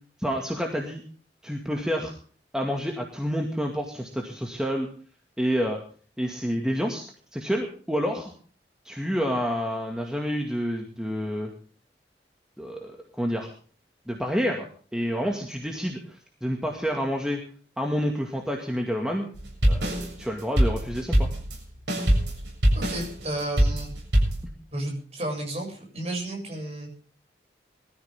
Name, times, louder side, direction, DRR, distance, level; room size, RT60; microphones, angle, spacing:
voice 1, 0.2-1.0 1.4-2.1 2.5-4.9 5.4-5.8 6.2-7.0 7.3-8.3 8.8-11.5 12.6-13.5 14.1-14.7 14.9-17.4 17.8-19.3 19.6-21.3, equal, 5° right, 1 dB, 2.1 m, -28 dB
sound 1, 19.3-24.4, equal, 85° right, 7.6 m, -23 dB
voice 2, 22.7-23.9 24.7-27.0, right 1 dB, 35° right, 1 dB, 7.4 m, -32 dB
21.5 x 14.0 x 3.7 m, 0.42 s
head